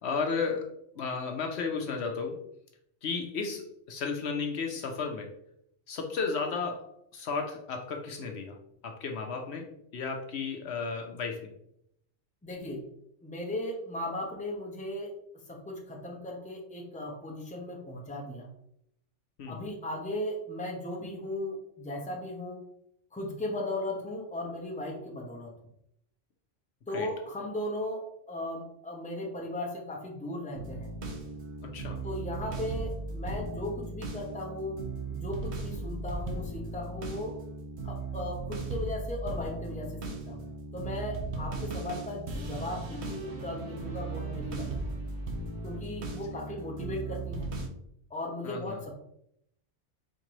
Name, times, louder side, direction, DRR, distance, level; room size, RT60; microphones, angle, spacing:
voice 1, 0.0-2.4 3.0-5.3 5.9-8.6 8.8-11.5 19.4-19.6 26.9-27.1 31.6-32.0 48.4-48.8, left 5 dB, 65° left, 3 dB, 0.9 m, -34 dB
voice 2, 12.4-12.8 13.2-15.1 15.5-18.5 19.5-22.6 23.1-25.5 26.9-30.9 32.0-34.8 35.1-37.4 37.8-40.0 40.3-40.5 40.7-44.8 45.6-47.5 48.1-48.9, left 1 dB, 5° left, -1 dB, 0.8 m, -37 dB
sound 1, 30.5-47.7, right 3 dB, 65° right, 1.1 m, -37 dB
4.4 x 3.7 x 3.1 m, 0.73 s
omnidirectional pair, 1.3 m